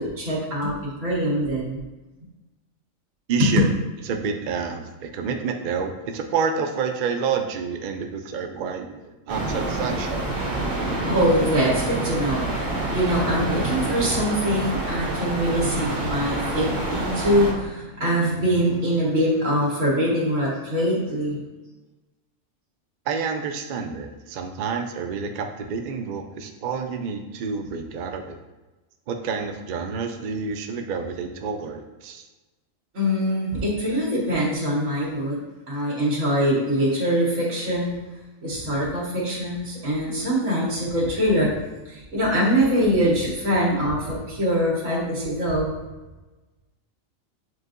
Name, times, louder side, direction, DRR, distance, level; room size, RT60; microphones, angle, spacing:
voice 1, 0.0-1.8 3.4-3.7 11.1-21.4 32.9-38.0 38.4-41.6 41.9-45.7, equal, 65° right, -6 dB, 1.8 m, -23 dB
voice 2, 3.3-3.7 4.1-10.3 23.1-28.4 29.1-32.3, right 5 dB, 90° right, 4 dB, 0.4 m, -28 dB
sound 1, 9.3-17.5, right 2 dB, 45° right, 1.3 m, -27 dB
7.6 x 2.7 x 2.5 m, 1.1 s
omnidirectional pair, 1.4 m